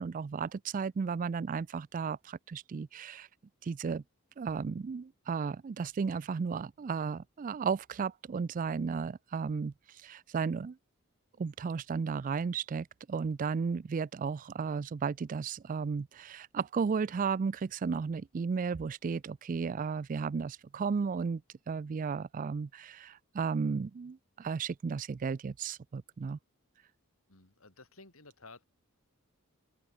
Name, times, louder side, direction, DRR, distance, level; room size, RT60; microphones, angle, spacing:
voice 1, 0.0-3.3 3.6-4.0 4.4-10.8 11.4-21.4 21.7-26.4, right 5 dB, 40° right, 0.3 m, -34 dB
voice 2, 27.3-28.6, left 3 dB, 70° left, 7.0 m, -54 dB
open air
head